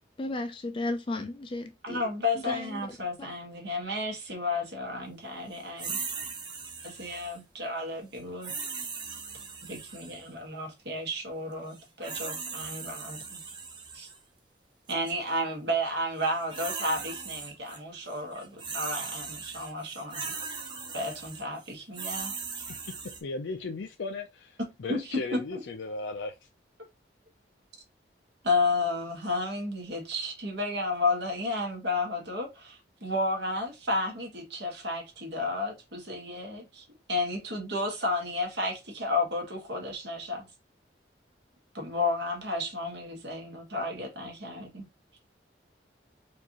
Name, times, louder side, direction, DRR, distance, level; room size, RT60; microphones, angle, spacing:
voice 1, 0.2-2.0 2.5-2.6 3.2-3.3, left 2 dB, 25° left, 0.4 m, -33 dB
voice 2, 1.8-6.0 6.8-8.5 9.6-13.4 13.9-14.1 14.9-20.3 20.9-22.6 24.9-25.6 28.4-40.5 41.7-44.8, left 2 dB, 70° right, 1.4 m, -32 dB
sound 1, 5.8-7.4 8.4-10.3 11.7-14.2 14.9-15.1 16.2-17.8 18.1-23.2, right 5 dB, 25° right, 0.7 m, -39 dB
voice 3, 23.2-26.4, left 3 dB, 80° left, 0.5 m, -36 dB
4.5 x 2.6 x 2.9 m
head